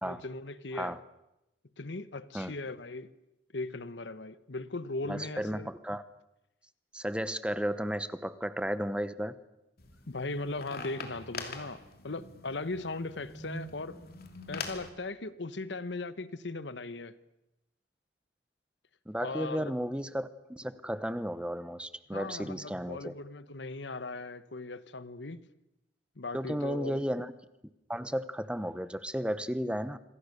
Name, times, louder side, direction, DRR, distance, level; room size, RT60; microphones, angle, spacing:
voice 1, 0.0-0.9 1.8-3.1 3.5-5.7 10.1-14.0 14.5-17.1 19.2-19.7 22.1-25.4 26.2-27.0, left 3 dB, 80° left, 1.2 m, -38 dB
voice 2, 5.1-6.0 6.9-9.4 19.1-23.1 26.3-27.3 27.9-30.0, equal, 5° right, 0.9 m, -34 dB
sound 1, 9.8-14.9, left 3 dB, 55° left, 3.0 m, -43 dB
27.0 x 23.5 x 6.8 m
head